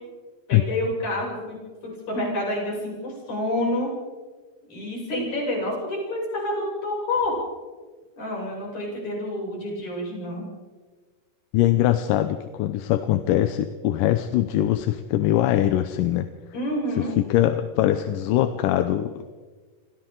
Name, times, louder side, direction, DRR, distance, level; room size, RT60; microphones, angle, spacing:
voice 1, 0.5-3.9 4.7-7.4 8.2-10.5 16.5-17.1, left 1 dB, 55° left, -3 dB, 9.0 m, -28 dB
voice 2, 11.5-16.3 17.0-19.4, left 13 dB, 75° left, 9 dB, 2.3 m, -22 dB
29.0 x 26.0 x 4.0 m, 1.4 s
omnidirectional pair, 4.1 m